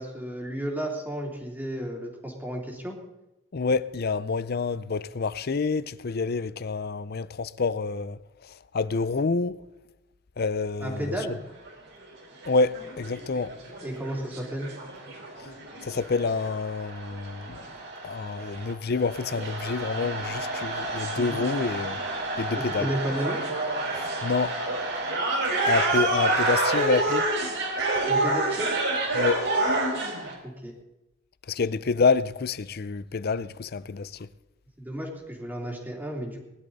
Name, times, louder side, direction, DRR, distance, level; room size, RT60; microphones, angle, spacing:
voice 1, 0.0-3.0 10.8-11.4 13.8-14.7 22.5-23.4 28.1-28.7 30.4-30.7 34.8-36.4, right 1 dB, 10° right, 3.0 m, -33 dB
voice 2, 3.5-9.6 10.4-11.1 12.5-13.5 15.8-17.6 18.0-22.0 22.4-22.9 24.0-24.6 25.7-27.2 29.1-29.4 31.5-34.3, left 4 dB, 50° left, 0.5 m, -28 dB
sound 1, 11.7-11.8 12.0-12.1 12.4-30.3, right 2 dB, 65° right, 4.7 m, -29 dB
20.5 x 11.5 x 4.1 m
head